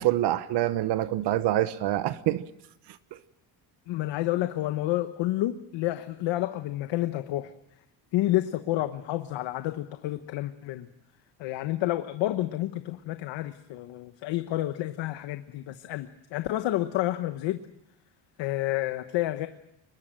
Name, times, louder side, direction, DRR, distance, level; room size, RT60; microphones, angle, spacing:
voice 1, 0.0-2.4, right 14 dB, 65° right, 1.0 m, -26 dB
voice 2, 3.9-7.5 8.1-10.9 11.4-17.6 18.4-19.5, left 15 dB, 80° left, 1.2 m, -29 dB
24.0 x 21.0 x 7.6 m
cardioid pair, 155°, 44 cm